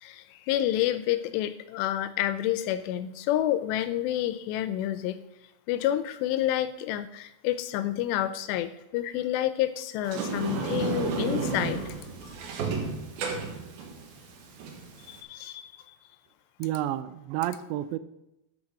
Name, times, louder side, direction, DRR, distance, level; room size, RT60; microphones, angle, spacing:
voice 1, 0.0-5.2 5.7-11.9 15.1-15.7, left 12 dB, 80° left, 13 dB, 2.6 m, -29 dB
Sliding door, 10.0-15.2, right 4 dB, 65° right, 3.0 m, -32 dB
voice 2, 16.6-18.0, right 13 dB, 85° right, 14 dB, 2.8 m, -30 dB
12.0 x 5.9 x 6.4 m, 0.90 s
omnidirectional pair, 5.1 m